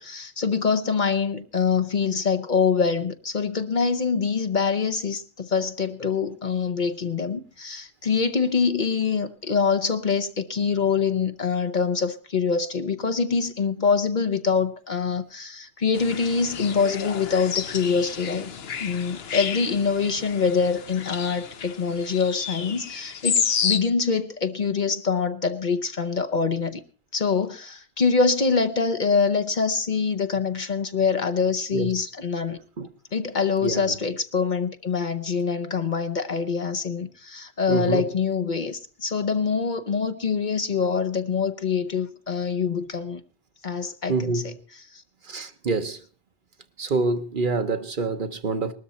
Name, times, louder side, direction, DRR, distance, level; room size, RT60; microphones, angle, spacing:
voice 1, 0.0-18.5 18.8-26.8 27.1-32.6 33.1-43.2 43.6-44.5 44.9-45.0, left 5 dB, 50° left, 1.0 m, -25 dB
sound 1, 16.0-23.8, left 7 dB, 70° left, 1.1 m, -30 dB
voice 2, 33.6-33.9 37.7-38.0 44.1-44.5 45.3-46.0 46.8-48.7, right 3 dB, 55° right, 1.1 m, -26 dB
19.5 x 13.0 x 4.2 m
omnidirectional pair, 1.1 m